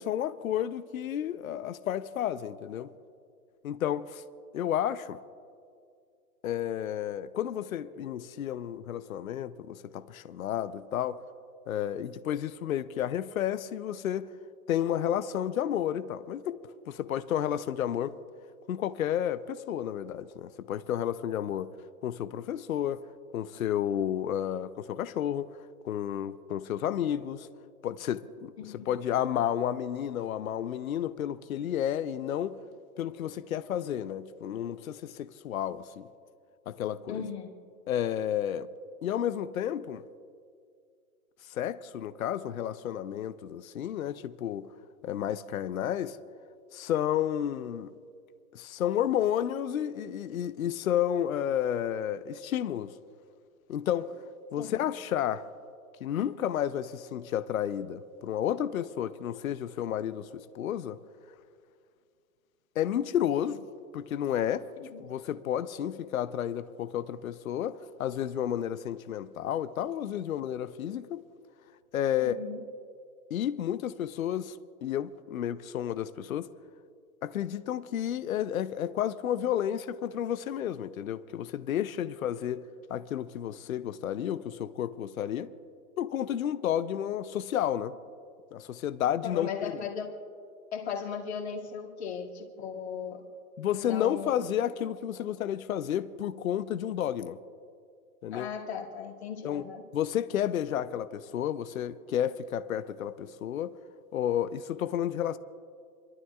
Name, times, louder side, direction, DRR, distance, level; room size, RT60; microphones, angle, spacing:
voice 1, 0.0-2.9 3.6-4.2 4.5-5.2 6.4-11.2 11.7-14.3 14.7-16.6 16.9-18.1 18.7-21.7 22.0-23.0 23.3-27.5 27.8-32.6 33.0-36.1 36.7-37.2 37.9-38.7 39.0-40.0 41.5-44.7 45.0-46.2 46.7-47.9 48.5-52.9 53.7-54.2 54.5-55.5 56.0-61.0 62.8-63.6 63.9-64.7 65.0-71.2 71.9-72.4 73.3-76.5 77.2-85.5 86.0-87.9 88.5-89.7 93.6-97.4 98.2-98.5 99.4-99.6 99.9-103.7 104.1-105.4, left 10 dB, 65° left, 0.7 m, -31 dB
voice 2, 28.6-28.9 37.1-37.5 54.6-54.8 64.9-65.0 72.2-72.6 89.2-90.1 90.7-93.2 93.7-94.4 98.3-99.8, left 7 dB, 45° left, 2.3 m, -37 dB
28.5 x 12.5 x 2.4 m
hypercardioid pair, 175°, 46 cm